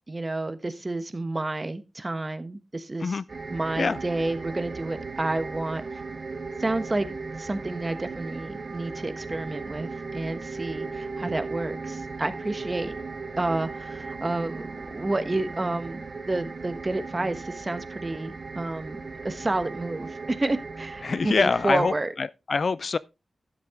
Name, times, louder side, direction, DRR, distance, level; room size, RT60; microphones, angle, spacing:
voice 1, 0.1-3.2 3.5-5.8 6.6-7.1 7.4-12.9 13.4-22.1, right 2 dB, 30° right, 1.2 m, -30 dB
sound 1, 3.3-22.0, right 4 dB, 55° right, 1.1 m, -37 dB
voice 2, 21.0-23.0, left 4 dB, 60° left, 0.4 m, -25 dB
11.5 x 7.6 x 3.7 m
wide cardioid pair, 85°, 0 cm